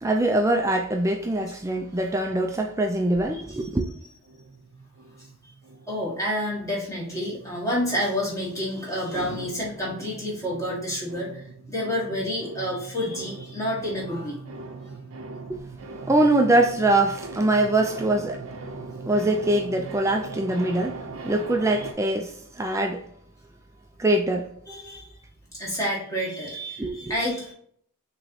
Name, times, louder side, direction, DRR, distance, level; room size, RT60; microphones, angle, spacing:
voice 1, 0.0-3.8 15.5-15.6 16.1-18.4 19.1-23.0 24.0-24.5 26.8-27.1, right 1 dB, 15° right, 0.4 m, -23 dB
sound 1, 4.2-6.8 7.0-21.9, right 3 dB, 80° right, 0.7 m, -41 dB
voice 2, 5.9-11.4 11.7-14.4 24.7-25.1 25.5-27.5, equal, 15° left, 1.8 m, -29 dB
6.2 x 3.1 x 2.8 m
head